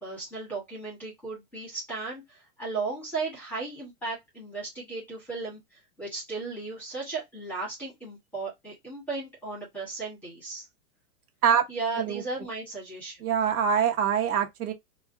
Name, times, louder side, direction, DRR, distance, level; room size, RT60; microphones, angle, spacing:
voice 1, 0.0-5.6 6.0-10.7 11.7-13.2, right 3 dB, 5° left, 1.1 m, -35 dB
voice 2, 13.2-14.7, right 8 dB, 75° right, 1.1 m, -24 dB
4.1 x 2.3 x 2.5 m
supercardioid pair, 180°, 45 cm